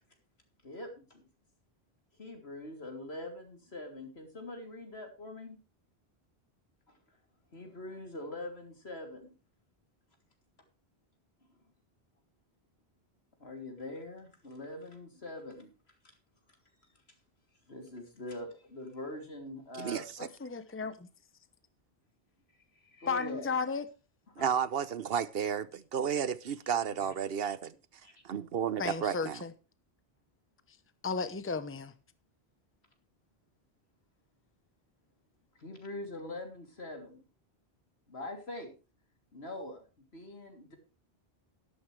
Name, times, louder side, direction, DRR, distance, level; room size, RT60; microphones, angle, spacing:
voice 1, 0.6-1.2 2.1-5.6 6.9-7.0 7.5-9.3 13.4-15.7 17.7-20.1 22.7-23.5 24.3-24.5 26.9-27.1 28.0-28.1 35.6-37.2 38.1-38.7 39.3-39.8 40.1-40.8, left 1 dB, 80° left, 3.3 m, -43 dB
voice 2, 20.2-21.1 23.1-23.8 28.8-29.5 31.0-31.9, left 4 dB, 15° left, 0.8 m, -34 dB
voice 3, 24.4-27.7 28.2-29.4, right 8 dB, 70° right, 1.0 m, -32 dB
12.5 x 12.0 x 3.3 m
omnidirectional pair, 1.1 m